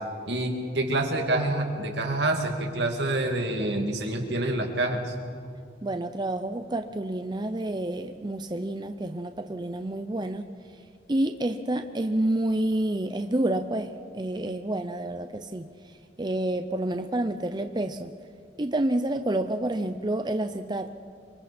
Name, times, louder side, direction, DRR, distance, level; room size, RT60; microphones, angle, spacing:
voice 1, 0.3-5.1, right 2 dB, 70° right, 3 dB, 2.6 m, -27 dB
voice 2, 5.8-10.5 11.1-15.7 16.2-18.1 18.6-20.9, right 1 dB, 25° right, 8 dB, 0.6 m, -29 dB
27.5 x 24.5 x 4.4 m, 2.3 s
head